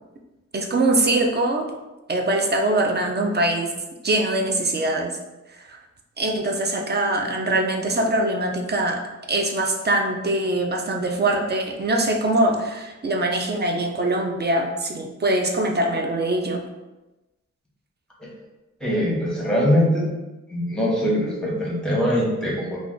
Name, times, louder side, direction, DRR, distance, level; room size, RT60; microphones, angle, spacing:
voice 1, 0.5-1.7 2.1-3.7 4.0-5.2 5.6-5.8 6.2-9.0 9.3-16.6, right 1 dB, 35° right, 2 dB, 0.4 m, -23 dB
voice 2, 18.8-20.1 20.5-22.9, equal, ahead, -3 dB, 0.9 m, -22 dB
2.4 x 2.4 x 3.7 m, 1.1 s
wide cardioid pair, 80°, 30 cm